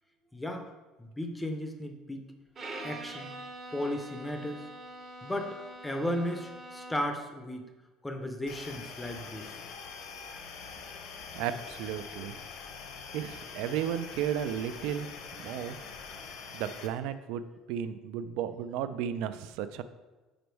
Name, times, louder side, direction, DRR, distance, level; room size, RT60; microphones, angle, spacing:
voice 1, 0.3-0.7 1.0-2.2 2.8-3.3 3.7-4.7 5.2-5.6 5.8-7.7 8.0-9.5, left 1 dB, 5° left, 4 dB, 0.5 m, -35 dB
Bowed string instrument, 2.5-7.2, right 2 dB, 25° right, 0.7 m, -44 dB
sound 1, 8.5-16.9, left 5 dB, 70° left, 0.8 m, -44 dB
voice 2, 11.4-12.4 13.1-15.1 15.4-15.8 16.5-19.8, right 9 dB, 75° right, 12 dB, 0.4 m, -34 dB
5.2 x 5.1 x 4.5 m, 1.2 s
cardioid pair, 170°, 0 cm